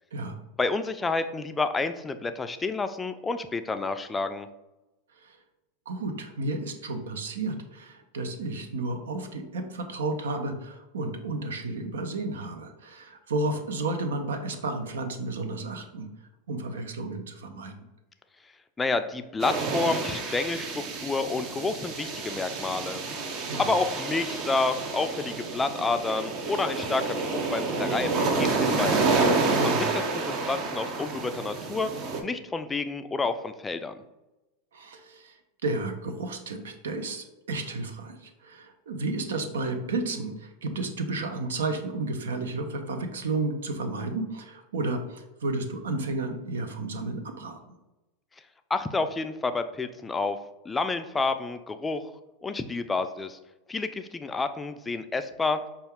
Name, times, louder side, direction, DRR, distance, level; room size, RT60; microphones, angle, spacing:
voice 1, 0.6-4.5 18.8-23.3 23.6-29.2 29.6-31.9 32.2-34.0 48.7-50.4 50.7-52.1 52.4-53.4 53.7-55.6, left 3 dB, 15° left, 9 dB, 0.3 m, -29 dB
voice 2, 5.9-16.1 16.5-17.7 23.5-23.7 29.5-29.9 34.7-47.7, right 2 dB, 90° right, 7 dB, 0.6 m, -32 dB
sound 1, 19.4-32.2, right 3 dB, 45° right, 0.7 m, -29 dB
5.3 x 2.3 x 3.5 m, 1.0 s
hypercardioid pair, 110°, 0 cm